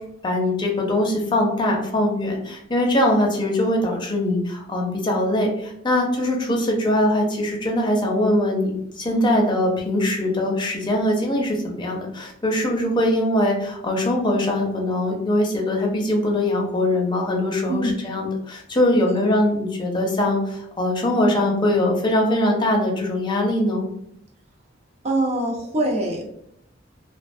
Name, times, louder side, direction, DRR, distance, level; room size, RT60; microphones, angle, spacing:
voice 1, 0.2-23.8, left 1 dB, 25° left, 0 dB, 0.5 m, -22 dB
voice 2, 25.0-26.3, right 1 dB, 35° right, 0 dB, 0.5 m, -24 dB
2.4 x 2.2 x 2.5 m, 0.73 s
head